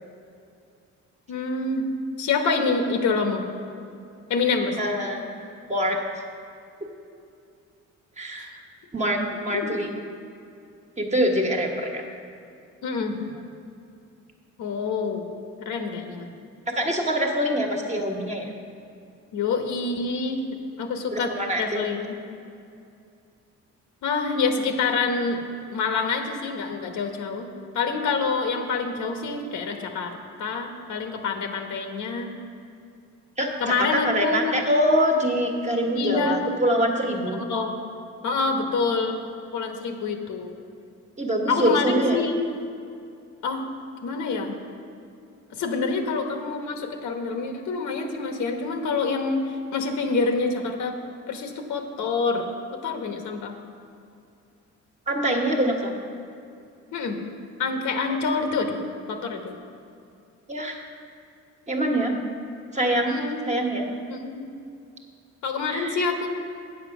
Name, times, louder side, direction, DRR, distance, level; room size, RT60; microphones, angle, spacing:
voice 1, 1.3-1.9 2.2-3.4 4.3-4.8 9.5-9.7 12.8-13.1 14.6-15.3 15.6-16.3 19.3-20.4 20.8-21.3 21.6-22.1 24.0-25.4 25.7-32.3 33.6-34.5 35.9-36.5 37.5-37.7 38.2-39.2 39.5-40.6 41.5-42.4 43.4-43.7 44.0-44.5 45.5-50.9 51.3-53.5 56.9-57.2 57.6-58.8 59.1-59.6 63.1-63.4 64.1-64.6 65.4-66.3, left 4 dB, 75° left, 4 dB, 1.2 m, -26 dB
voice 2, 4.8-5.2 5.7-6.0 8.2-8.5 8.9-10.0 11.0-12.1 16.7-18.5 21.1-21.8 33.4-37.4 41.2-42.2 55.1-55.9 58.1-58.2 60.5-60.8 61.7-62.1 62.7-63.1 63.5-63.9 65.7-66.0, equal, 25° right, 1 dB, 1.4 m, -24 dB
8.4 x 7.5 x 6.0 m, 2.5 s
cardioid pair, 90°, 30 cm